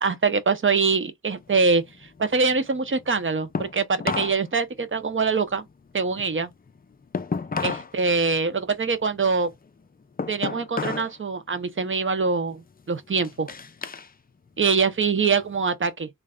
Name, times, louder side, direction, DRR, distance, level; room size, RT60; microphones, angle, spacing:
voice 1, 0.0-1.8 2.2-5.6 5.9-6.5 7.6-9.5 10.3-13.5 14.6-16.1, right 4 dB, 35° right, 0.7 m, -24 dB
sound 1, 1.3-4.4 4.7-7.9 8.3-11.2 11.5-11.9 12.5-14.1 14.5-15.6, left 5 dB, 25° left, 0.4 m, -33 dB
3.2 x 2.4 x 3.5 m
wide cardioid pair, 75°, 34 cm